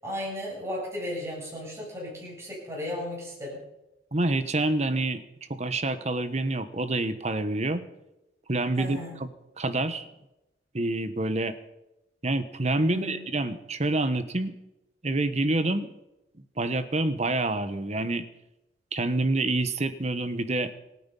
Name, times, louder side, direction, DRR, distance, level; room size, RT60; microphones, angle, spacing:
voice 1, 0.0-3.6 8.8-9.2 12.9-13.3, left 1 dB, 15° right, -4 dB, 7.6 m, -35 dB
voice 2, 4.1-5.2 5.5-7.8 8.5-9.0 9.6-10.0 10.7-11.5 12.2-14.5 15.0-15.9 16.6-18.2 18.9-20.7, right 2 dB, 40° right, 11 dB, 1.2 m, -27 dB
26.5 x 9.5 x 5.5 m, 0.93 s
head